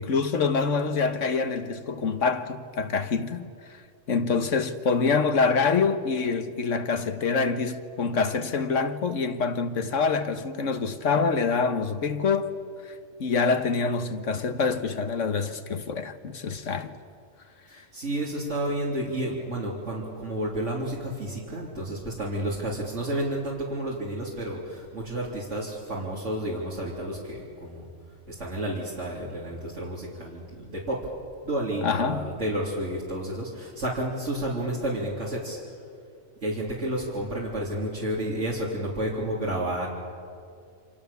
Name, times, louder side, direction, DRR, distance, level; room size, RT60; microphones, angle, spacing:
voice 1, 0.0-3.5 4.1-12.5 13.2-17.0 31.8-32.2, left 5 dB, 80° left, 1.6 m, -26 dB
voice 2, 17.7-27.9 28.3-31.1 31.4-35.6 36.4-39.9, right 1 dB, 70° right, 3.9 m, -31 dB
28.5 x 27.0 x 7.0 m
omnidirectional pair, 1.3 m